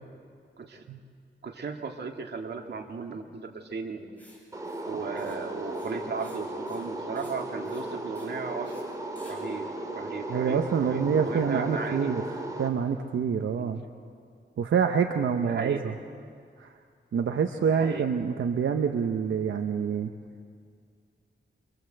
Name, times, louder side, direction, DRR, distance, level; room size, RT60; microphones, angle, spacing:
voice 1, 1.4-4.2 4.9-8.7 9.2-9.7 10.0-12.2 13.6-13.7 15.4-16.0 17.6-18.1, right 5 dB, 60° right, 2 dB, 2.3 m, -36 dB
Writing, 4.2-4.4 4.6-4.9 5.2-5.4 5.6-6.4 6.7-6.9 7.1-7.4 7.6-7.9 8.1-8.3 8.6-8.8 9.2-9.4, equal, 10° left, 7.5 m, -55 dB
sound 1, 4.5-12.7, right 1 dB, 15° right, 3.1 m, -36 dB
voice 2, 10.3-12.2 12.6-13.8 14.6-15.9 16.6-16.7 17.1-20.1, right 6 dB, 85° right, 5 dB, 1.1 m, -26 dB
27.0 x 24.5 x 8.0 m, 2.2 s
wide cardioid pair, 125°, 20 cm